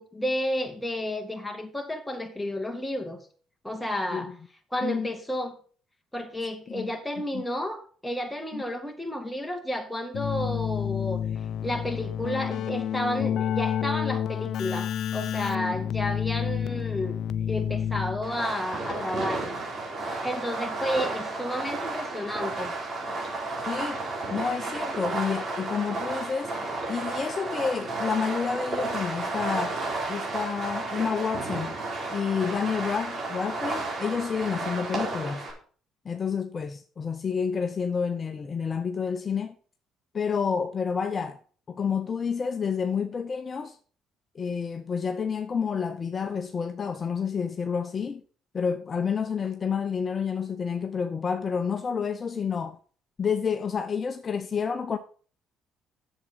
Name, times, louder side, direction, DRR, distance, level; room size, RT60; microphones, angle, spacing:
voice 1, 0.0-3.2 3.6-4.3 4.7-5.5 6.1-11.2 11.6-17.2 17.5-19.6 20.2-22.7, left 1 dB, 5° left, 2.2 m, -31 dB
Keyboard (musical), 10.1-18.5, left 9 dB, 65° left, 0.5 m, -29 dB
Fireworks, 18.2-35.5, right 2 dB, 45° right, 4.2 m, -32 dB
voice 2, 23.7-24.0 24.3-26.5 26.9-29.8 30.1-31.7 32.1-35.5 36.0-39.5 40.1-41.4 41.7-43.8 44.3-48.2 48.5-52.8 53.2-55.0, left 6 dB, 40° left, 0.8 m, -29 dB
7.9 x 7.4 x 5.7 m
supercardioid pair, 75°, 0 cm